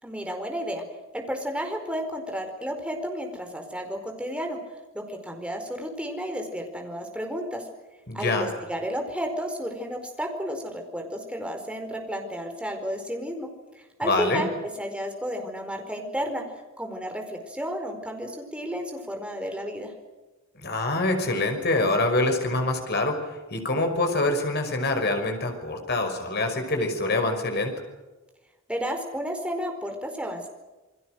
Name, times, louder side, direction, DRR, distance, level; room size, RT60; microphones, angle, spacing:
voice 1, 0.0-0.8 1.1-4.6 4.9-7.6 8.1-13.5 13.8-14.5 14.8-16.4 16.8-19.9 28.7-30.5, equal, 5° right, 4 dB, 4.6 m, -32 dB
voice 2, 8.1-8.5 14.0-14.4 20.6-27.7, left 2 dB, 55° left, 5 dB, 5.6 m, -25 dB
29.0 x 21.5 x 6.5 m, 1.2 s
head